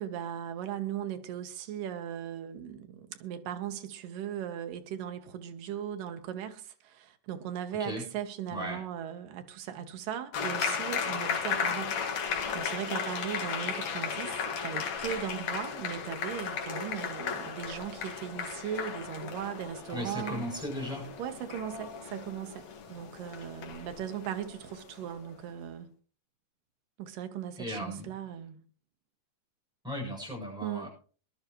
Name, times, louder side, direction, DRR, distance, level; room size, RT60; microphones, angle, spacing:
voice 1, 0.0-20.5 21.2-25.9 27.0-28.6 30.6-30.9, right 9 dB, 85° right, 2.8 m, -38 dB
sound 1, 10.3-25.3, left 6 dB, 60° left, 2.8 m, -35 dB
voice 2, 19.9-21.1 27.6-28.1 29.8-30.9, equal, ahead, 7.4 m, -36 dB
21.5 x 12.0 x 3.1 m
omnidirectional pair, 3.8 m